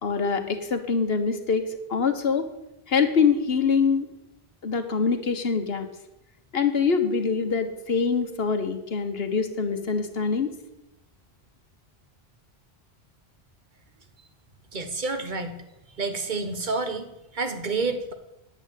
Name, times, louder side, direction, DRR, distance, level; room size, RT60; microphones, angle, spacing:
voice 1, 0.0-1.6 1.9-2.5 2.9-4.1 4.6-5.9 6.5-10.5, left 5 dB, 70° left, 7 dB, 1.5 m, -24 dB
voice 2, 14.7-15.6 16.0-18.1, right 3 dB, 50° right, 8 dB, 1.4 m, -29 dB
9.8 x 9.0 x 9.1 m, 0.91 s
omnidirectional pair, 1.1 m